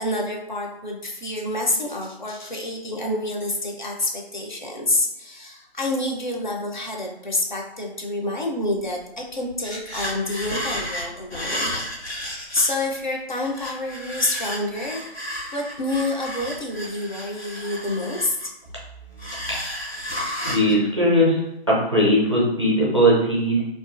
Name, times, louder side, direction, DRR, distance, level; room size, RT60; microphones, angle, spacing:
voice 1, 0.0-11.7 12.2-15.0 15.5-18.5, left 2 dB, 50° left, 0 dB, 0.5 m, -28 dB
sound 1, 9.0-9.1 9.3-13.0 13.3-18.7 19.2-20.7, equal, 90° left, 1.2 m, -32 dB
voice 2, 20.4-21.4 21.7-23.6, equal, 30° right, -6 dB, 0.5 m, -19 dB
2.3 x 2.3 x 2.4 m, 0.90 s
figure-of-eight pair, 160°, 32 cm